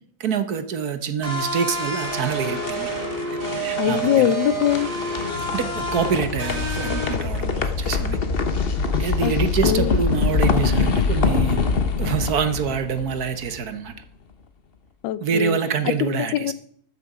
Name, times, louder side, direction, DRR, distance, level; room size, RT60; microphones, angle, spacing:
voice 1, 0.2-2.9 3.6-4.3 5.5-8.2 9.0-11.7 12.0-13.9 15.2-16.5, right 6 dB, 55° right, 10 dB, 1.2 m, -26 dB
sound 1, 1.2-7.2, right 2 dB, 25° right, 2.7 m, -28 dB
sound 2, 1.7-13.8, left 4 dB, 40° left, 0.8 m, -24 dB
voice 2, 3.8-4.9 9.2-9.3 9.6-9.9 15.0-15.6 16.0-16.5, left 13 dB, 70° left, 17 dB, 1.1 m, -22 dB
14.0 x 9.6 x 4.9 m, 0.63 s
omnidirectional pair, 2.4 m